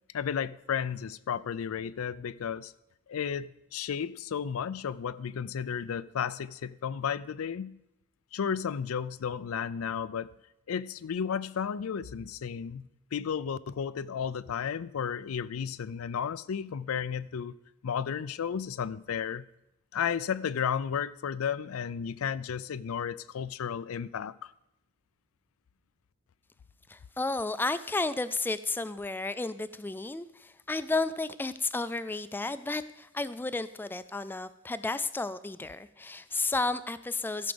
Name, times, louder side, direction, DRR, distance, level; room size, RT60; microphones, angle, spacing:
voice 1, 0.1-2.7 3.1-7.8 8.3-10.3 10.7-17.6 17.8-19.4 19.9-24.3, left 7 dB, 90° left, 0.4 m, -33 dB
voice 2, 26.9-37.5, left 3 dB, 10° left, 0.3 m, -32 dB
13.5 x 5.1 x 6.9 m
head